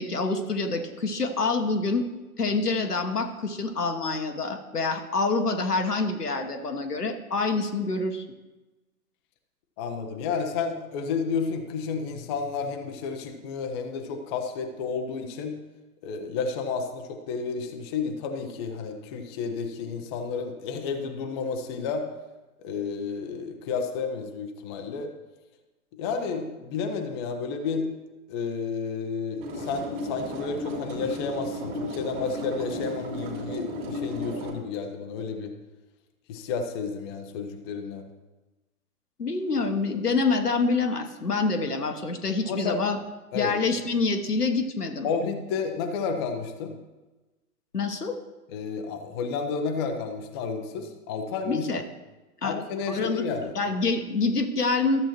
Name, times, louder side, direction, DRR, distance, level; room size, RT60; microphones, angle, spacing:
voice 1, 0.0-2.1 2.4-8.2 39.2-43.0 43.3-45.1 47.7-48.1 51.4-51.8 52.4-52.5 52.9-53.2 53.5-55.0, left 3 dB, 85° left, 5 dB, 1.2 m, -26 dB
voice 2, 9.8-15.6 16.0-22.1 22.6-25.1 26.0-27.9 28.3-35.5 36.3-38.0 42.5-42.8 43.3-43.6 45.0-46.8 48.5-51.6 52.4-53.5, left 5 dB, 20° left, 5 dB, 0.5 m, -31 dB
sound 1, 29.4-34.5, left 1 dB, 30° right, 2.1 m, -34 dB
13.0 x 7.3 x 3.0 m, 1.1 s
figure-of-eight pair, 115°, 45 cm